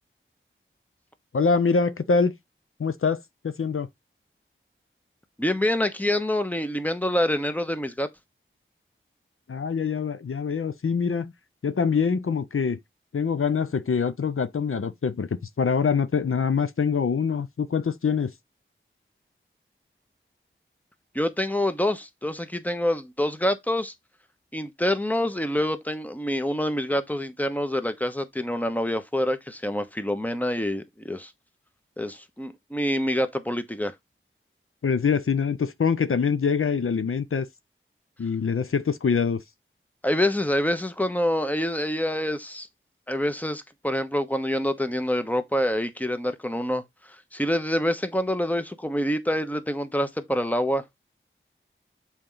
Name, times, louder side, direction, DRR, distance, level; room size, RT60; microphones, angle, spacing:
voice 1, 1.3-2.3 2.8-3.9 9.5-11.3 11.6-12.8 13.1-18.3 34.8-37.5 38.2-39.4, left 5 dB, 80° left, 0.7 m, -24 dB
voice 2, 5.4-8.1 21.1-23.9 24.5-31.3 32.0-33.9 40.0-42.7 43.1-46.8 47.1-50.8, left 1 dB, 5° left, 1.1 m, -26 dB
6.8 x 4.4 x 3.9 m
wide cardioid pair, 50°, 21 cm